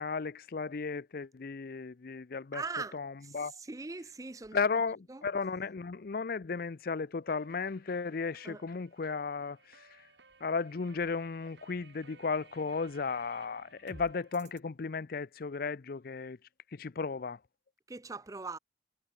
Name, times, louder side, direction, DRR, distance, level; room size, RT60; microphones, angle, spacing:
voice 1, 0.0-2.6 2.9-3.5 4.5-10.1 10.4-16.4 16.7-17.4, left 4 dB, 55° left, 0.5 m, -35 dB
voice 2, 2.5-3.0 3.2-3.3 3.6-4.6 5.1-5.2 8.4-8.6 17.9-18.6, right 3 dB, 20° right, 0.5 m, -40 dB
sound 1, 7.4-14.6, right 3 dB, 75° right, 5.8 m, -58 dB
head